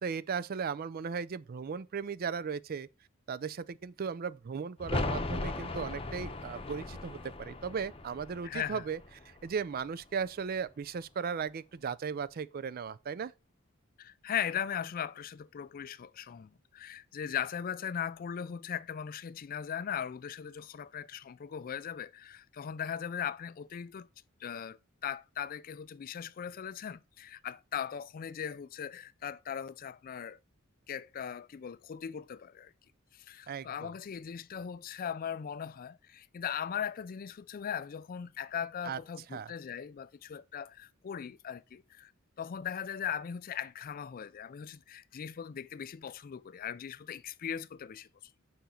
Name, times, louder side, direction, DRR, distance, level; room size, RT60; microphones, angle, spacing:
voice 1, 0.0-2.9 3.3-9.0 9.3-13.3 33.5-33.9 38.8-39.0 39.3-39.5, right 6 dB, 45° right, 0.4 m, -36 dB
sound 1, 4.8-10.4 10.6-10.7, left 2 dB, 25° left, 0.9 m, -38 dB
voice 2, 8.4-8.8 14.0-24.1 24.4-30.4 30.9-32.7 33.1-42.1 42.4-48.1, left 8 dB, 40° left, 0.3 m, -39 dB
7.0 x 5.2 x 4.3 m
head